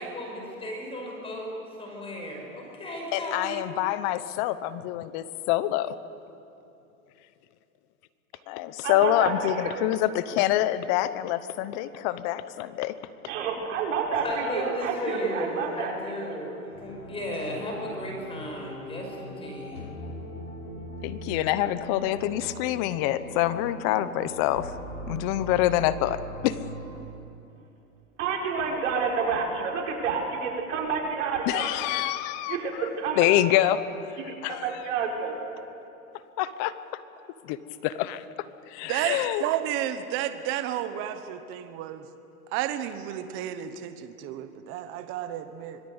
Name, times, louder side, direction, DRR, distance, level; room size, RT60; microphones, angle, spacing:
voice 1, 0.0-1.5 1.8-3.6 14.2-19.9, left 1 dB, 15° left, 0 dB, 5.6 m, -35 dB
voice 2, 3.1-5.9 8.5-13.0 21.0-24.7 25.1-26.6 31.5-32.6 33.1-33.8 34.4-34.7 36.4-36.7 37.4-37.6 37.8-39.4, left 14 dB, 30° left, 14 dB, 0.9 m, -26 dB
voice 3, 8.8-9.9 13.3-16.4 28.2-31.7 32.5-32.7 33.0-33.3 34.3-35.4, right 5 dB, 55° right, 0 dB, 5.4 m, -29 dB
sound 1, 16.7-27.0, equal, 85° left, 6.5 m, -40 dB
voice 4, 38.9-42.0 42.5-45.8, right 11 dB, 30° right, 9 dB, 1.2 m, -31 dB
26.0 x 21.0 x 8.1 m, 2.8 s
hypercardioid pair, 150°, 43 cm